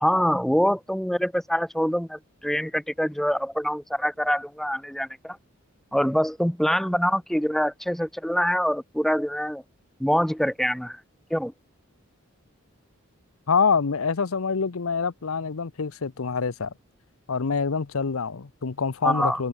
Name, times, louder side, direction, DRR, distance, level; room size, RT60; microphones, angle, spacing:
voice 1, 0.0-5.4 5.9-9.6 10.0-11.0 11.3-11.5 19.0-19.4, equal, ahead, 0.9 m, -25 dB
voice 2, 13.5-16.7 17.3-19.5, left 5 dB, 75° left, 0.7 m, -26 dB
head